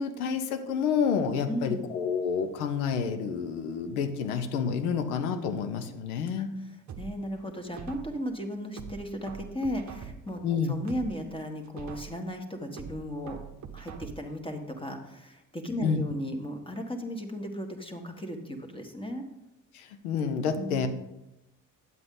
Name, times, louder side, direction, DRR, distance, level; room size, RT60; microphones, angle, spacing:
voice 1, 0.0-6.5 10.4-10.8 15.8-16.0 19.7-20.9, left 6 dB, 90° left, 9 dB, 0.8 m, -29 dB
voice 2, 1.5-1.9 6.4-6.5 7.0-13.4 13.7-19.2 20.6-20.9, equal, 10° left, 4 dB, 1.5 m, -35 dB
sound 1, 6.9-8.3 8.8-10.4 10.8-12.3 12.8-14.4 14.8-14.9, right 7 dB, 40° right, 0.8 m, -43 dB
9.4 x 7.8 x 3.8 m, 0.92 s
hypercardioid pair, 55°, 43 cm